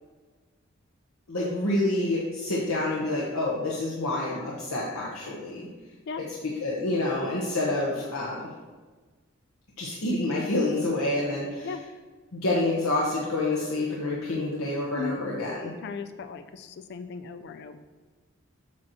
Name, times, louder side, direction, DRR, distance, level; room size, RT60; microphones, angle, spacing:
voice 1, 1.3-5.6 6.2-6.3 6.6-8.5 9.8-11.7 12.3-15.7, left 2 dB, 85° left, -5 dB, 1.0 m, -28 dB
voice 2, 15.8-17.8, left 5 dB, 50° left, 9 dB, 0.3 m, -36 dB
7.4 x 2.9 x 6.1 m, 1.4 s
head